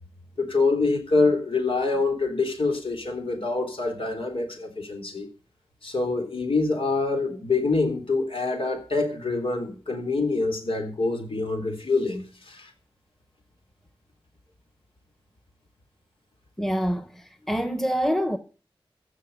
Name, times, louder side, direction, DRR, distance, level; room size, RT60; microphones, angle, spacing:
voice 1, 0.4-5.3 5.8-12.7, left 3 dB, 75° left, 3.6 m, -25 dB
voice 2, 16.6-18.4, equal, 5° left, 1.2 m, -26 dB
15.0 x 6.7 x 6.9 m
wide cardioid pair, 90°, 9 cm